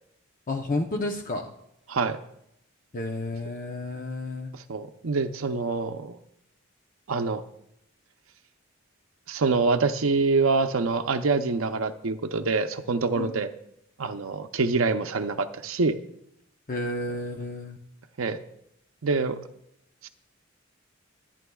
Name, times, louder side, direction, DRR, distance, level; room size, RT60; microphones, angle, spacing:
voice 1, 0.5-1.4 2.9-4.5 13.2-13.4 16.7-17.8, left 2 dB, 40° left, 3 dB, 0.8 m, -31 dB
voice 2, 4.5-6.2 7.1-7.4 9.3-13.5 14.0-16.0 18.2-18.4 19.0-19.4 20.0-20.1, right 4 dB, 85° right, 7 dB, 0.7 m, -25 dB
25.5 x 9.1 x 2.3 m, 0.76 s
head